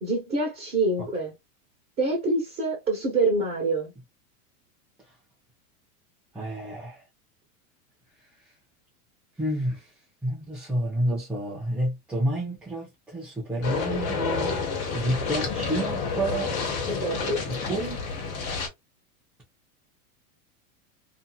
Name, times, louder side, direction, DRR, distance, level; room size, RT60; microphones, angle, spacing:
voice 1, 0.0-1.3 2.0-3.9 16.9-17.4, right 2 dB, 20° right, 1.1 m, -26 dB
voice 2, 6.3-7.0 9.4-9.8 10.2-14.6 14.9-16.5 17.5-18.0, right 1 dB, ahead, 0.4 m, -29 dB
sound 1, 13.6-18.7, left 5 dB, 35° left, 1.0 m, -29 dB
2.7 x 2.5 x 2.3 m
supercardioid pair, 145°, 43 cm